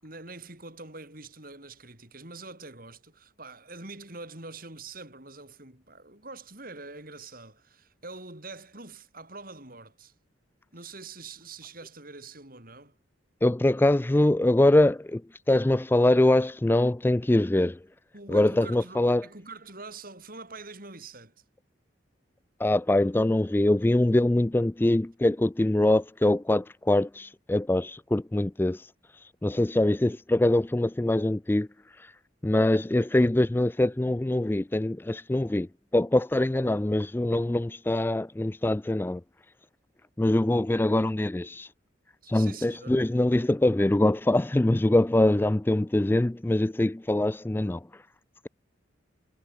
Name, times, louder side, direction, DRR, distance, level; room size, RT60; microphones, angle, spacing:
voice 1, 0.0-10.1 10.7-12.9 18.1-21.3 30.1-30.2 42.2-43.0, right 3 dB, 45° right, 5.6 m, -44 dB
voice 2, 13.4-15.2 15.5-17.8 18.3-19.3 22.6-28.9 29.4-31.7 32.0-32.1 32.4-39.2 40.2-41.7 42.3-47.9, left 1 dB, 10° left, 0.3 m, -23 dB
head